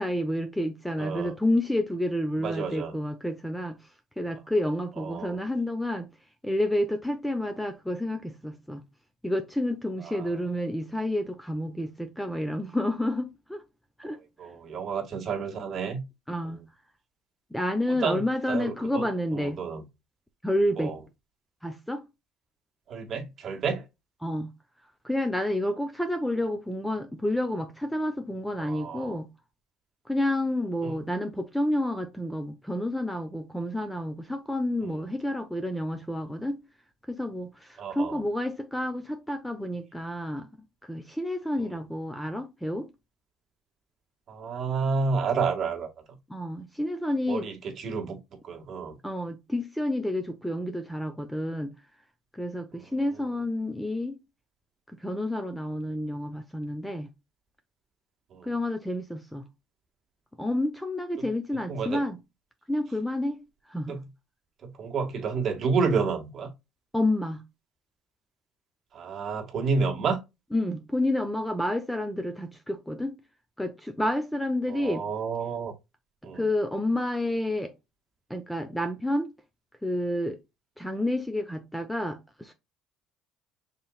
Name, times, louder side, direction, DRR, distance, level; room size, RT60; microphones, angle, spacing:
voice 1, 0.0-3.8 4.2-6.1 6.4-8.8 9.2-13.6 14.0-14.2 16.3-16.6 17.5-19.6 20.4-20.9 21.6-22.1 24.2-24.5 25.0-29.3 30.1-36.6 37.1-40.5 40.8-42.9 46.3-47.5 49.0-51.7 52.3-54.2 55.0-57.1 58.4-59.4 60.4-62.2 62.7-63.4 63.7-64.0 66.9-67.4 70.5-73.2 73.6-75.0 76.3-77.7 78.3-79.3 79.8-80.4 80.8-82.5, left 1 dB, 5° left, 0.7 m, -29 dB
voice 2, 1.0-1.3 2.4-2.9 5.0-5.4 10.0-10.3 14.4-16.0 17.9-18.2 18.5-19.1 19.3-19.8 20.8-21.0 22.9-23.8 28.6-29.2 30.8-30.9 37.8-38.2 44.3-45.9 47.3-48.2 48.4-49.0 52.8-52.9 58.3-58.5 61.7-62.0 63.9-64.0 64.6-66.5 68.9-70.2 74.7-75.7 76.2-76.4, right 5 dB, 40° right, 1.7 m, -30 dB
5.5 x 4.0 x 2.3 m
cardioid pair, 125°, 0 cm